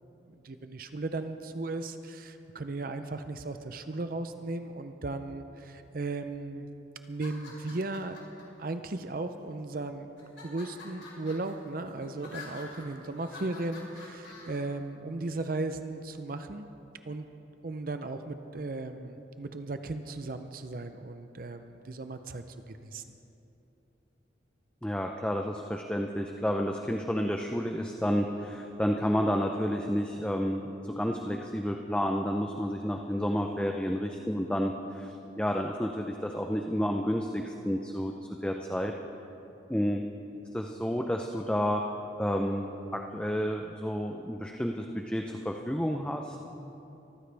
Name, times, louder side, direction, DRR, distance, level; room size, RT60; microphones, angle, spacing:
voice 1, 0.3-6.7 7.1-8.2 8.6-10.1 10.4-16.7 17.1-17.3 17.6-23.0, right 2 dB, 50° right, 8 dB, 0.6 m, -36 dB
sound 1, 7.1-8.4 9.2-9.7 10.2-14.6, left 3 dB, 85° left, 4.4 m, -48 dB
voice 2, 24.8-38.1 38.4-38.9 39.7-40.0 40.5-41.8 42.2-46.4, equal, 5° left, 2 dB, 0.5 m, -30 dB
24.0 x 14.5 x 3.4 m, 2.9 s
head